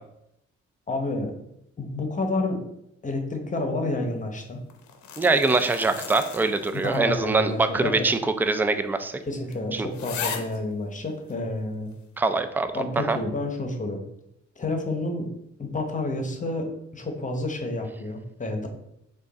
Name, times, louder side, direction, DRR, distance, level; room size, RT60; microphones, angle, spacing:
voice 1, 0.9-1.3 1.8-2.6 3.0-4.6 6.7-8.1 9.3-11.9 12.7-14.0 14.6-15.3 15.6-18.7, left 2 dB, 25° left, 4 dB, 0.9 m, -29 dB
sound 1, 4.7-7.2 7.5-7.6 8.4-8.5 8.9-9.0 9.5-9.6 9.9-10.6 11.3-11.4, left 7 dB, 70° left, 0.7 m, -36 dB
voice 2, 5.2-9.1 9.7-9.9 12.2-13.2, right 3 dB, 5° right, 9 dB, 0.3 m, -23 dB
5.0 x 2.5 x 4.0 m, 0.78 s
cardioid pair, 90°, 30 cm